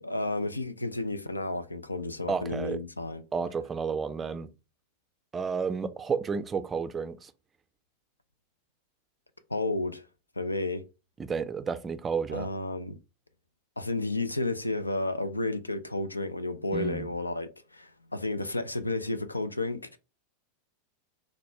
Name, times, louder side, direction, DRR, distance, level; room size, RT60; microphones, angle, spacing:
voice 1, 0.0-3.2 9.5-10.0 10.4-10.8 12.3-13.0 13.8-20.0, left 2 dB, 85° left, 0.4 m, -32 dB
voice 2, 2.3-2.8 3.3-4.5 5.3-7.3 11.2-12.5 16.7-17.1, right 5 dB, 20° right, 0.4 m, -31 dB
4.1 x 2.1 x 3.2 m
figure-of-eight pair, 90°, 0 cm